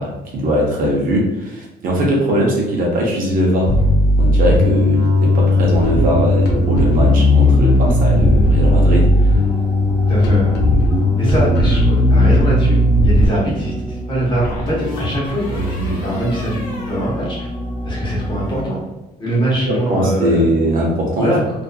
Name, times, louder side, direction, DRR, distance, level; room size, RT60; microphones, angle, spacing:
voice 1, 0.0-3.7 4.2-9.3 19.7-21.4, equal, 55° right, -2 dB, 0.7 m, -19 dB
sound 1, 3.4-18.6, equal, ahead, 0.4 m, -30 dB
Bass guitar, 3.7-13.3, left 1 dB, 80° left, 0.6 m, -15 dB
voice 2, 10.1-10.5 11.2-17.5 17.8-18.8 19.2-20.5 21.2-21.4, right 1 dB, 30° left, -6 dB, 0.9 m, -22 dB
sound 2, 11.9-12.5 14.4-17.9 18.1-18.6, right 1 dB, 55° left, 1.0 m, -33 dB
2.6 x 2.4 x 2.2 m, 1.0 s
cardioid pair, 170°, 17 cm